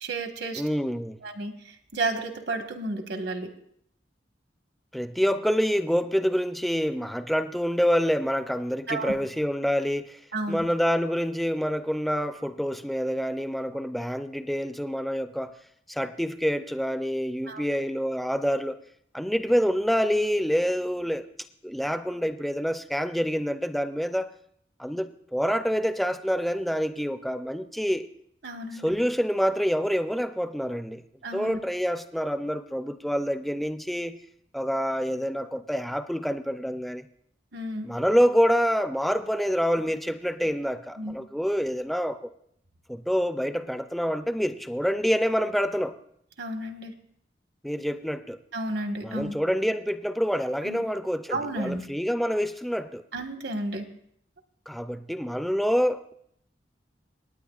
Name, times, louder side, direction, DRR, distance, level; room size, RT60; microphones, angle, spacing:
voice 1, 0.0-0.6 1.2-3.5 8.9-9.1 10.3-10.6 17.5-17.6 28.4-29.0 31.2-31.6 37.5-37.9 41.0-41.2 46.4-46.9 48.5-49.3 50.6-50.8 51.3-51.8 53.1-53.9, right 2 dB, 75° right, 5 dB, 1.4 m, -32 dB
voice 2, 0.6-1.2 4.9-10.2 10.5-15.5 15.9-18.8 19.1-21.3 21.6-24.3 24.8-28.1 28.8-31.0 31.3-34.2 34.5-37.1 37.8-42.3 42.9-46.0 47.6-48.4 49.0-53.0 54.7-56.1, equal, ahead, 9 dB, 0.4 m, -27 dB
27.5 x 9.5 x 2.4 m, 0.70 s
head